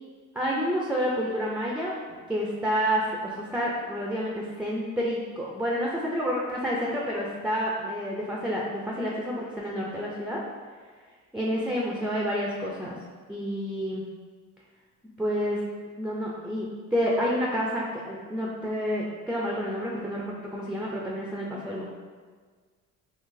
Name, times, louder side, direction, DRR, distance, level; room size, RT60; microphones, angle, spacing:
voice 1, 0.3-10.4 11.3-13.0 13.3-14.0 15.2-15.6 15.9-21.8, equal, 5° right, -3 dB, 0.4 m, -29 dB
3.9 x 2.8 x 2.6 m, 1.6 s
supercardioid pair, 75°, 36 cm